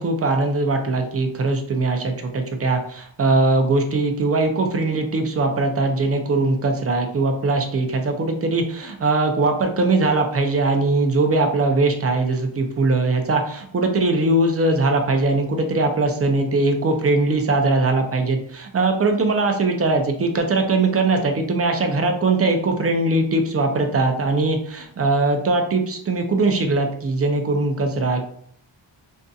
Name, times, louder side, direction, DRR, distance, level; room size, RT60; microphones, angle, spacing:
voice 1, 0.0-28.3, right 3 dB, 30° right, 4 dB, 0.4 m, -21 dB
2.6 x 2.5 x 2.3 m, 0.62 s
wide cardioid pair, 100°, 48 cm